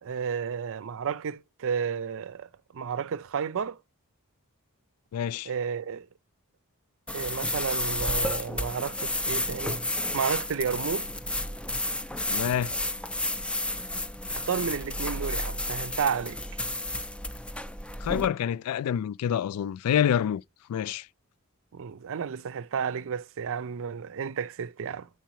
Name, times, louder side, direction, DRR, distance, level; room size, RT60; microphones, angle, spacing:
voice 1, 0.0-3.8 5.5-6.1 7.1-9.8 10.1-11.1 14.3-16.4 21.7-25.1, right 7 dB, 65° right, 0.5 m, -32 dB
voice 2, 5.1-5.5 12.3-12.7 18.0-20.4 20.7-21.1, left 9 dB, 80° left, 0.3 m, -27 dB
sound 1, 7.1-18.3, left 1 dB, 5° left, 0.5 m, -31 dB
9.1 x 4.5 x 3.0 m
head